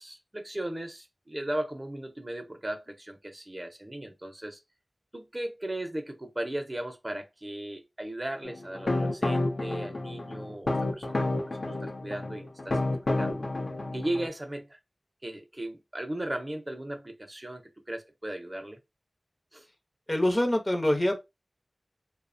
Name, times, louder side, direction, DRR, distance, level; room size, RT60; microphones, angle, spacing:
voice 1, 0.0-4.6 5.1-11.3 11.7-12.8 13.2-13.5 13.9-14.8 15.2-18.8 19.5-19.7, right 1 dB, 30° right, 0.5 m, -37 dB
sound 1, 8.4-14.3, left 2 dB, 80° left, 0.5 m, -30 dB
voice 2, 20.1-21.2, left 1 dB, 35° left, 0.6 m, -25 dB
2.7 x 2.0 x 2.5 m
wide cardioid pair, 55°, 0 cm